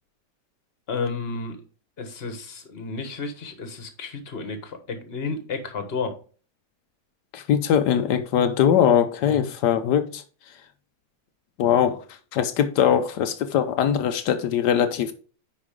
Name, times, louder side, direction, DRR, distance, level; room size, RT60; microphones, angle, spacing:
voice 1, 0.9-1.6 2.0-6.1 9.2-9.5, left 4 dB, 40° left, 1.5 m, -32 dB
voice 2, 7.3-10.2 11.6-12.0 12.3-15.1, left 9 dB, 85° left, 1.3 m, -21 dB
9.8 x 4.9 x 3.7 m
omnidirectional pair, 1.7 m